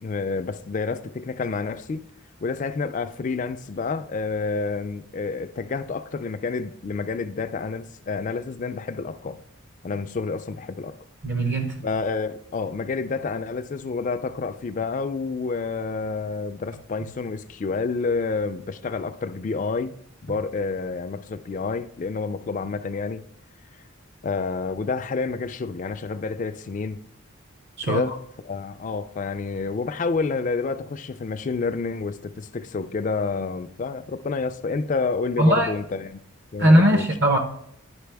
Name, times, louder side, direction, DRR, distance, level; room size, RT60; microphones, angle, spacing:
voice 1, 0.0-2.0 2.4-9.4 9.8-11.0 11.8-19.9 20.2-23.2 24.2-27.0 27.8-36.2 36.5-37.1, left 4 dB, 35° left, 0.3 m, -29 dB
voice 2, 11.2-11.7 27.8-28.0 35.4-35.7 36.6-37.4, equal, 50° right, 0.7 m, -18 dB
10.5 x 5.4 x 3.4 m
head